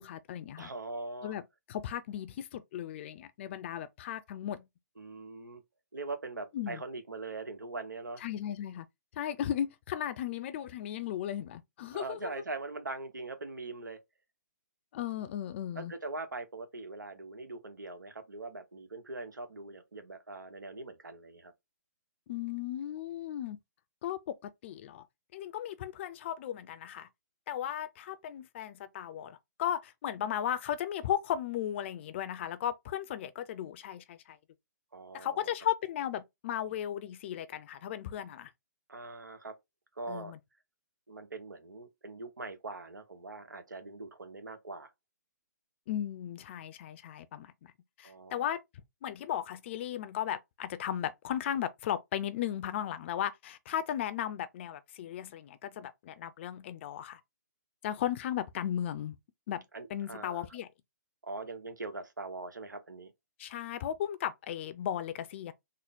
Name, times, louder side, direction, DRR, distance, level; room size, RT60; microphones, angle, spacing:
voice 1, 0.0-0.7 1.2-1.4 1.7-4.6 6.5-6.8 8.2-8.9 9.1-12.3 14.9-15.9 22.3-23.6 24.0-25.0 25.3-27.1 27.5-34.4 35.1-38.5 40.1-40.4 45.9-47.7 48.0-48.6 49.0-57.2 57.8-59.2 59.5-59.6 59.9-60.7 63.4-65.5, left 10 dB, 40° left, 0.5 m, -36 dB
voice 2, 0.6-1.3 5.0-5.6 5.9-8.2 11.9-14.0 15.7-21.5 34.9-35.5 38.9-39.6 40.0-40.3 41.1-44.9 48.0-48.5 59.7-60.5 61.2-63.1, right 3 dB, 85° right, 1.0 m, -42 dB
3.8 x 2.1 x 3.5 m
figure-of-eight pair, 135°, 10 cm